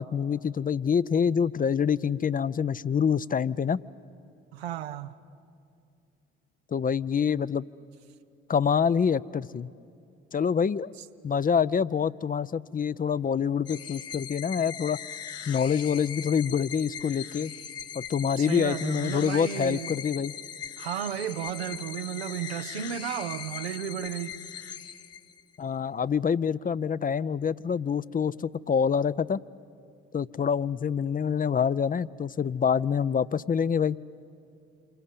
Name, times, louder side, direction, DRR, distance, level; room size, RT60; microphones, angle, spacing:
voice 1, 0.0-3.8 6.7-7.7 8.5-9.7 10.3-10.9 11.2-15.0 15.5-17.5 17.9-20.3 25.6-29.4 30.1-34.0, left 7 dB, 30° left, 0.5 m, -26 dB
voice 2, 4.5-5.2 18.4-19.9 20.8-24.4, right 10 dB, 90° right, 0.7 m, -33 dB
sound 1, 13.7-25.6, left 8 dB, 50° left, 1.1 m, -40 dB
27.5 x 23.5 x 8.5 m
hypercardioid pair, 50°, 30 cm